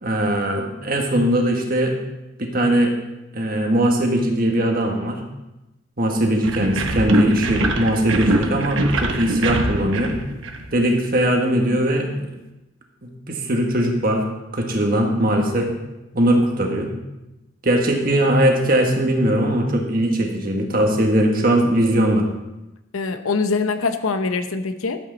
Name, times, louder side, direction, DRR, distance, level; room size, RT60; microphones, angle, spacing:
voice 1, 0.0-1.9 2.4-2.9 3.3-5.2 6.0-10.1 10.7-12.3 13.3-14.2 14.5-15.7 16.1-16.9 17.6-22.2, right 1 dB, 45° right, 2 dB, 1.6 m, -20 dB
sound 1, 6.4-11.1, right 2 dB, 70° right, 1.1 m, -24 dB
voice 2, 22.9-25.0, left 4 dB, 90° left, 9 dB, 0.8 m, -23 dB
12.5 x 8.5 x 4.0 m, 0.97 s
head